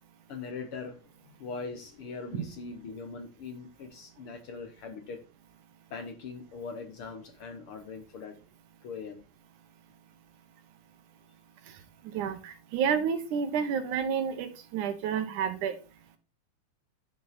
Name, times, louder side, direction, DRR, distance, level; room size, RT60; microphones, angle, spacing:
voice 1, 0.3-5.2 5.9-8.4 8.8-9.2, left 4 dB, 60° left, 1.6 m, -41 dB
voice 2, 12.0-15.8, right 7 dB, 85° right, 2.7 m, -30 dB
10.0 x 7.0 x 4.1 m
omnidirectional pair, 3.4 m